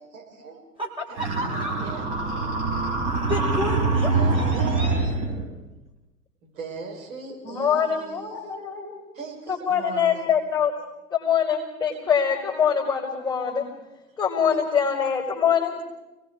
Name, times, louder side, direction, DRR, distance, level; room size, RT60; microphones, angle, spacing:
voice 1, 0.0-0.6 1.1-2.4 4.1-4.9 6.4-8.5 9.1-10.3 14.5-15.0, right 4 dB, 60° right, 0 dB, 6.4 m, -40 dB
voice 2, 0.8-1.7 3.3-5.1, left 1 dB, 10° right, -1 dB, 5.4 m, -32 dB
sound 1, 1.2-5.5, right 3 dB, 40° right, 6.2 m, -24 dB
voice 3, 7.4-9.0 9.5-10.7 11.1-13.6 14.2-15.8, left 7 dB, 5° left, -5 dB, 5.1 m, -24 dB
29.5 x 19.5 x 4.9 m, 1.0 s
figure-of-eight pair, 90°, 46 cm